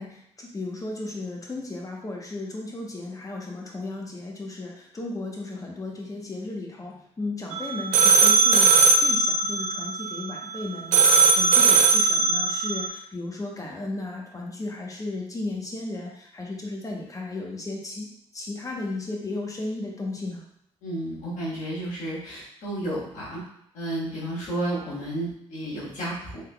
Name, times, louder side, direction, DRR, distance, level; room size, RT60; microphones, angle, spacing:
voice 1, 0.0-18.1 18.3-20.4, left 2 dB, 30° left, -1 dB, 0.9 m, -35 dB
sound 1, 7.5-10.6 10.9-12.9, right 4 dB, 85° right, 0.4 m, -19 dB
voice 2, 20.8-23.4 23.7-26.4, right 1 dB, 85° left, -7 dB, 1.4 m, -32 dB
3.5 x 3.5 x 2.3 m, 0.74 s
cardioid pair, 75°, 12 cm